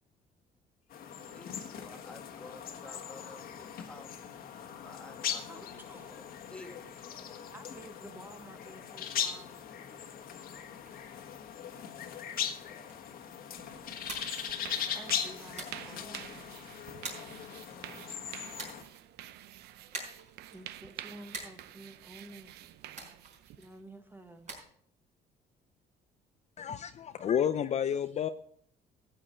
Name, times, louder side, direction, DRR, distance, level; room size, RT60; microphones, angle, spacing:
sound 1, 0.9-18.8, left 8 dB, 60° left, 1.5 m, -40 dB
voice 1, 1.1-4.1 4.8-6.0 6.5-7.3, left 2 dB, 5° left, 5 dB, 1.5 m, -52 dB
voice 2, 5.3-6.1 7.5-9.6 14.9-16.8 20.5-22.5 23.6-24.5, right 1 dB, 10° right, 7 dB, 1.3 m, -51 dB
sound 2, 10.4-24.6, right 3 dB, 45° right, 4.4 m, -50 dB
sound 3, 13.6-23.8, right 13 dB, 75° right, 0.6 m, -49 dB
voice 3, 26.6-28.3, left 8 dB, 40° left, 10 dB, 0.5 m, -30 dB
14.5 x 8.6 x 4.4 m, 0.63 s
cardioid pair, 110°, 17 cm